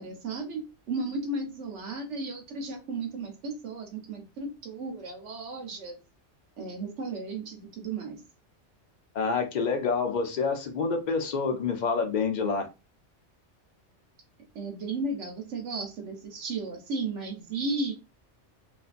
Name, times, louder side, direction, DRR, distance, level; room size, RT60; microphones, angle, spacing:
voice 1, 0.0-6.0 6.6-8.2 14.5-17.9, right 3 dB, 80° right, 1.1 m, -34 dB
voice 2, 9.1-12.7, left 5 dB, 50° left, 0.5 m, -27 dB
2.6 x 2.5 x 2.4 m
omnidirectional pair, 1.2 m